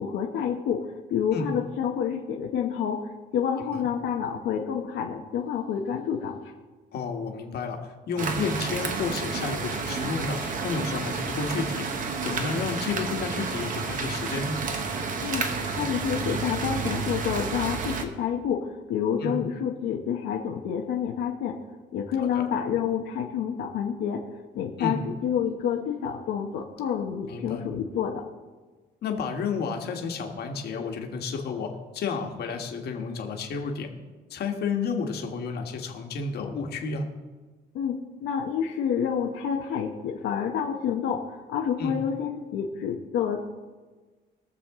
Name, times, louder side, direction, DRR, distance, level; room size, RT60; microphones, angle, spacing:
voice 1, 0.0-6.5 15.2-21.6 21.9-24.2 24.5-28.2 37.7-43.4, left 8 dB, 90° left, 0 dB, 1.0 m, -28 dB
voice 2, 6.9-11.8 12.2-14.6 19.2-19.4 22.2-22.4 24.8-25.0 27.3-27.6 29.0-33.9 34.3-37.0 41.8-42.0, left 4 dB, 60° left, 3 dB, 1.5 m, -31 dB
sound 1, 8.2-18.1, right 4 dB, 45° right, 1.2 m, -30 dB
21.5 x 7.2 x 3.7 m, 1.3 s
cardioid pair, 150°, 19 cm